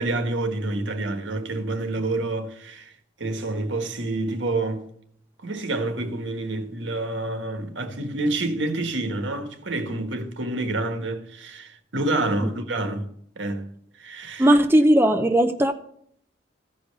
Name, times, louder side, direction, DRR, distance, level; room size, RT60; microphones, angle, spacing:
voice 1, 0.0-2.9 3.2-4.9 5.4-13.1 13.4-13.7 14.0-14.5, right 2 dB, 80° right, 1.4 m, -28 dB
voice 2, 14.4-15.7, right 1 dB, 15° right, 0.7 m, -17 dB
14.5 x 5.3 x 6.7 m
head